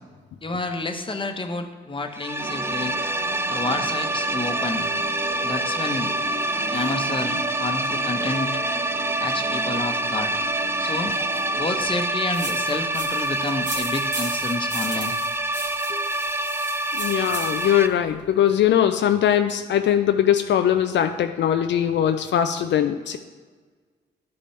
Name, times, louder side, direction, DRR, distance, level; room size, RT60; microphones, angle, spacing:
voice 1, 0.4-2.9 3.5-4.9 5.4-6.1 6.7-8.5 9.2-10.3 10.8-11.1 11.5-15.2 15.9-16.1, left 2 dB, 25° left, 5 dB, 1.1 m, -29 dB
sound 1, 2.1-17.9, right 1 dB, 10° right, 0.6 m, -26 dB
sound 2, 2.4-11.9, right 2 dB, 90° right, 2.4 m, -36 dB
sound 3, 12.3-17.8, right 1 dB, 40° right, 2.3 m, -37 dB
voice 2, 16.9-23.2, left 10 dB, 70° left, 7 dB, 0.5 m, -21 dB
11.5 x 5.1 x 3.3 m, 1.5 s
supercardioid pair, 45°, 19 cm